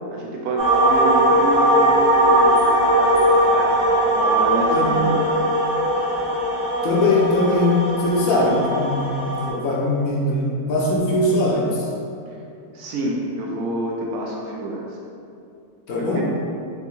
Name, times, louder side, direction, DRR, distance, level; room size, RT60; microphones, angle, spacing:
voice 1, 0.1-3.8 4.1-5.2 8.3-8.6 12.7-14.8 15.9-16.2, right 1 dB, 75° right, -2 dB, 1.0 m, -28 dB
sound 1, 0.6-9.5, right 1 dB, 55° right, 1.2 m, -19 dB
voice 2, 6.8-7.7 8.0-11.9 15.9-16.2, left 1 dB, 65° left, -4 dB, 1.0 m, -21 dB
3.5 x 2.7 x 4.2 m, 2.6 s
omnidirectional pair, 1.7 m